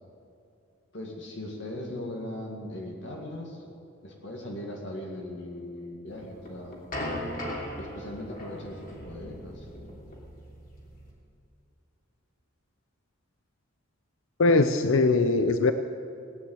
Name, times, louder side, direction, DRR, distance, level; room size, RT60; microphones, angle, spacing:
voice 1, 0.9-3.7 4.0-6.8 7.7-9.7, left 1 dB, 60° left, 0 dB, 2.1 m, -39 dB
sound 1, 6.2-11.1, left 1 dB, 40° left, 3.0 m, -38 dB
voice 2, 14.4-15.7, left 3 dB, 80° left, 9 dB, 0.6 m, -21 dB
17.5 x 9.8 x 7.9 m, 2.6 s
head